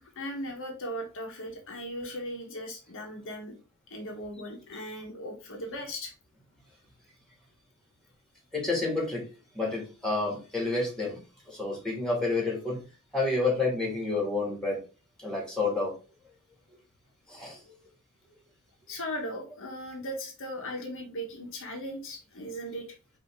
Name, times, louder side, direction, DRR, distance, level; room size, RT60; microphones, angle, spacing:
voice 1, 0.0-3.6 3.9-6.1 18.9-22.9, equal, 65° left, 1 dB, 1.1 m, -38 dB
voice 2, 8.5-9.3 9.5-11.2 11.5-12.8 13.1-14.8 15.2-15.9 17.3-17.6, left 3 dB, 5° left, -2 dB, 2.0 m, -29 dB
5.4 x 2.8 x 3.5 m, 0.33 s
head